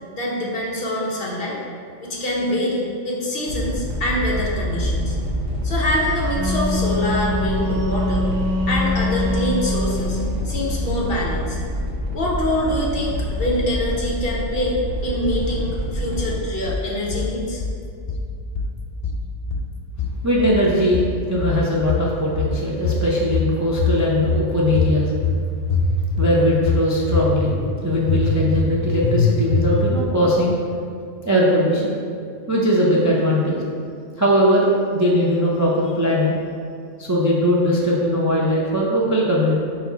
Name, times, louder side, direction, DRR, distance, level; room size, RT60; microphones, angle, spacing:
voice 1, 0.1-1.6 2.0-5.2 5.6-8.3 8.7-10.2 10.4-11.6 12.1-17.6, left 1 dB, 50° left, -3 dB, 1.1 m, -25 dB
sound 1, 3.5-16.3, equal, 55° right, 1.1 m, -26 dB
Wind instrument woodwind instrument, 6.1-10.3, left 2 dB, 75° right, 1.1 m, -24 dB
sound 2, 15.2-15.8 16.2-16.8 17.1-17.8 18.1-18.8 19.0-19.7 20.0-20.7 20.9-21.6 21.9-22.6 22.8-23.5 23.8-24.4 24.7-25.4 25.7-26.3 26.6-27.3 27.6-27.7 28.1-28.7 29.0-29.2 29.5-30.0, left 4 dB, 70° left, 0.3 m, -23 dB
voice 2, 20.2-25.1 26.2-27.5 27.8-30.5 31.3-32.0 32.5-33.6 34.2-36.3 37.0-39.5, equal, 20° right, -5 dB, 0.5 m, -19 dB
5.2 x 4.6 x 4.0 m, 2.4 s
omnidirectional pair, 1.3 m